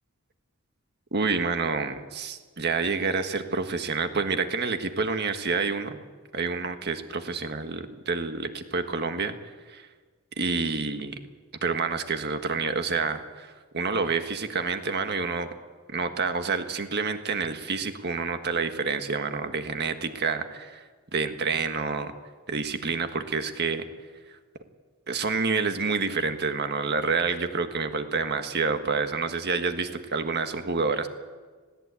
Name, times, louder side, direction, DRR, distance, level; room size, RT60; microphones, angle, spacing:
voice 1, 1.1-6.0 6.3-9.3 9.7-9.9 10.4-11.2 11.6-15.5 15.9-20.8 21.1-22.1 22.5-23.8 25.1-31.1, right 4 dB, 50° right, 7 dB, 1.6 m, -28 dB
20.0 x 17.0 x 8.3 m, 1.5 s
head